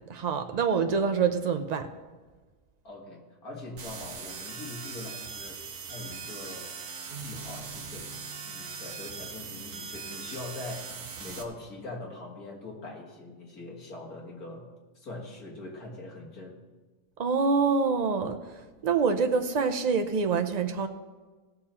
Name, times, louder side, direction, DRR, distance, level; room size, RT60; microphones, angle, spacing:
voice 1, 0.0-1.9 17.2-20.9, right 5 dB, 85° right, 7 dB, 0.3 m, -26 dB
voice 2, 2.8-5.6 5.9-6.7 7.1-8.2 8.4-10.9 11.2-14.7 15.0-16.6, left 2 dB, 70° left, -1 dB, 2.4 m, -42 dB
sound 1, 3.8-11.4, right 5 dB, 60° right, 1.3 m, -40 dB
sound 2, 7.1-10.6, right 3 dB, 45° right, 0.9 m, -49 dB
17.5 x 6.9 x 4.3 m, 1.3 s
omnidirectional pair, 1.6 m